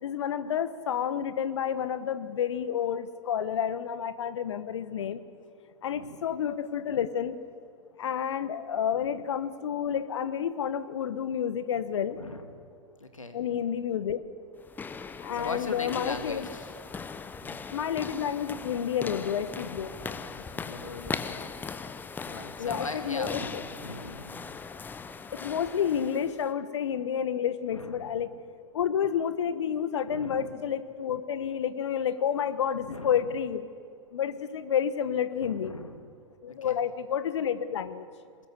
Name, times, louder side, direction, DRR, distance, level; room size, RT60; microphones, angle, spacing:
voice 1, 0.0-5.2 5.8-7.4 8.0-12.2 13.3-14.2 15.2-16.5 17.7-19.9 22.6-23.6 25.3-28.3 28.7-33.7 34.1-35.8 36.4-38.1, left 8 dB, 60° left, 13 dB, 1.3 m, -30 dB
voice 2, 12.1-12.5 13.0-13.4 15.3-16.7 17.4-17.6 20.0-21.5 22.2-24.5 27.7-28.2 30.1-30.5 32.8-33.3 35.4-36.1 36.5-36.8, left 2 dB, 85° left, 8 dB, 1.9 m, -40 dB
sound 1, 14.6-26.5, left 5 dB, 10° left, 0.8 m, -39 dB
22.0 x 20.5 x 7.9 m, 2.2 s
figure-of-eight pair, 105°, 17 cm